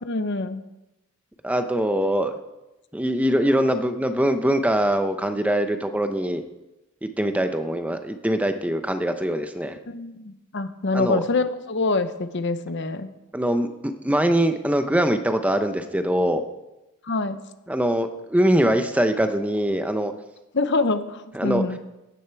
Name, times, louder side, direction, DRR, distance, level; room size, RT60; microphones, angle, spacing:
voice 1, 0.0-0.6 9.9-13.1 17.0-17.4 20.5-21.8, left 3 dB, 55° left, 11 dB, 0.8 m, -25 dB
voice 2, 1.4-2.4 2.9-6.4 7.2-9.8 10.9-11.2 13.3-16.4 17.7-20.1 21.3-21.6, right 1 dB, 5° right, 8 dB, 0.7 m, -23 dB
15.5 x 10.0 x 4.6 m, 0.97 s
head